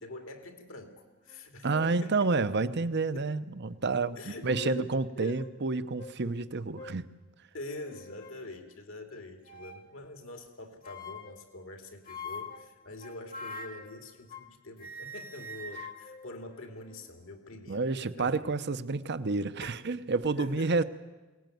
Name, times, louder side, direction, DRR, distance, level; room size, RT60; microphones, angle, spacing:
voice 1, 0.0-2.3 2.7-2.8 3.1-3.3 4.2-4.9 5.2-5.5 7.5-18.3 19.6-19.8 20.2-20.8, left 2 dB, 70° left, 5 dB, 2.7 m, -45 dB
sound 1, 1.3-1.4 1.7-2.1 2.8-2.9 4.2-5.0 5.4-5.5 6.0-6.2 6.8-7.0 7.7-8.4 9.4-9.9 10.8-11.4 12.1-14.5 14.8-17.1, left 2 dB, 45° left, 1.6 m, -44 dB
voice 2, 1.6-7.1 17.7-20.8, right 3 dB, 55° right, 13 dB, 0.9 m, -29 dB
22.5 x 18.5 x 9.3 m, 1.2 s
head